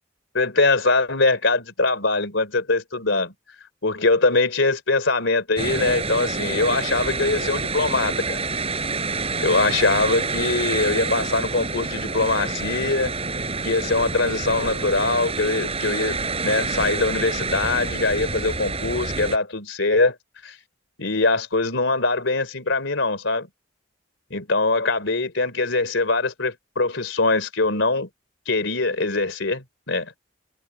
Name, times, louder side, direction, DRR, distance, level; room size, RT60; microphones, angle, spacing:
voice 1, 0.3-3.3 3.8-8.4 9.4-13.1 13.6-20.2 20.4-20.6 21.0-23.5 24.3-28.1 28.5-30.1, left 3 dB, 75° left, 3.5 m, -22 dB
sound 1, 5.6-19.4, right 4 dB, 30° right, 7.1 m, -27 dB
head